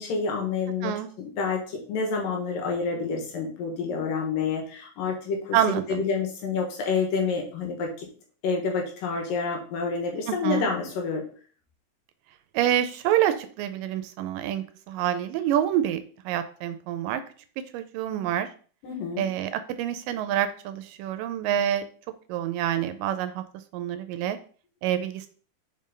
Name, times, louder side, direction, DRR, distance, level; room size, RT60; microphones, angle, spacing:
voice 1, 0.0-0.9 1.2-5.6 5.9-8.1 8.4-11.2 18.8-19.3, left 5 dB, 75° left, 1 dB, 3.0 m, -28 dB
voice 2, 5.5-6.0 10.3-10.7 12.5-17.2 17.7-18.5 19.2-21.8 22.3-23.4 23.7-24.4 24.8-25.3, right 11 dB, 80° right, 10 dB, 2.1 m, -27 dB
5.3 x 5.3 x 3.7 m, 0.42 s
omnidirectional pair, 4.1 m